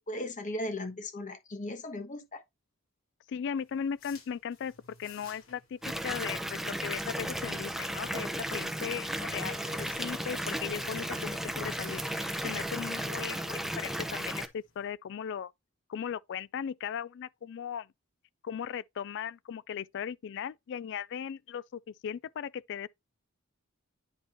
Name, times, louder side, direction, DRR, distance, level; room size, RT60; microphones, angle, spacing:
voice 1, 0.0-2.4, left 1 dB, 40° left, 1.2 m, -37 dB
voice 2, 3.3-4.7 5.0-15.5 15.9-17.9 18.4-22.9, left 8 dB, 60° left, 0.3 m, -37 dB
sound 1, 3.6-14.9, left 4 dB, 90° left, 4.5 m, -56 dB
Water tap faucet / Bathtub (filling or washing) / Fill (with liquid), 5.8-14.5, equal, ahead, 0.7 m, -35 dB
9.8 x 4.4 x 2.9 m
head